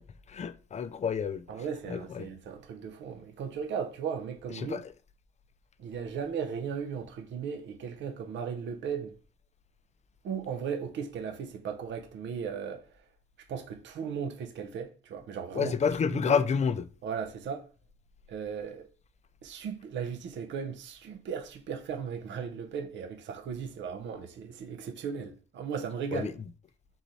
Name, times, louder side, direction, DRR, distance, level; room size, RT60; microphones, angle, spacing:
voice 1, 0.3-1.4 1.9-2.3 4.7-4.8 15.6-16.8 26.1-26.3, left 6 dB, 35° left, 0.4 m, -28 dB
voice 2, 1.5-4.8 5.8-9.1 10.2-12.9 13.4-15.8 16.1-16.4 17.0-17.7 18.3-18.9 19.4-26.4, right 7 dB, 65° right, 0.6 m, -36 dB
3.9 x 3.1 x 4.0 m
cardioid pair, 90°, 20 cm